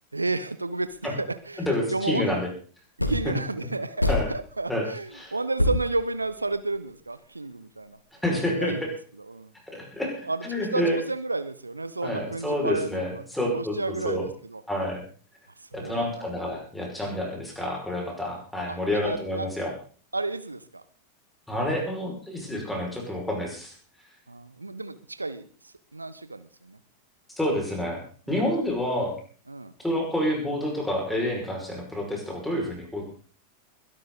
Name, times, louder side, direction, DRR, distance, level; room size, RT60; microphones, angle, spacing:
voice 1, 0.1-2.4 3.1-8.0 8.4-9.5 10.2-10.5 10.7-13.2 13.5-14.6 15.6-16.2 18.7-19.5 20.1-20.8 24.3-26.8 28.3-28.4 29.5-29.7, right 2 dB, 80° right, 13 dB, 1.0 m, -32 dB
sound 1, 0.9-1.0 3.0-3.4 4.0-4.6 5.1-5.2 5.6-6.8, left 1 dB, 85° left, 2.4 m, -26 dB
voice 2, 1.6-2.5 4.1-4.3 4.7-4.8 5.1-5.3 8.2-8.9 9.7-11.0 12.0-14.2 14.7-15.0 15.7-19.7 21.5-23.7 27.4-28.0 28.3-29.1 29.8-33.0, left 1 dB, 5° left, -1 dB, 6.0 m, -28 dB
21.5 x 12.0 x 4.1 m, 0.43 s
figure-of-eight pair, 90°, 0 cm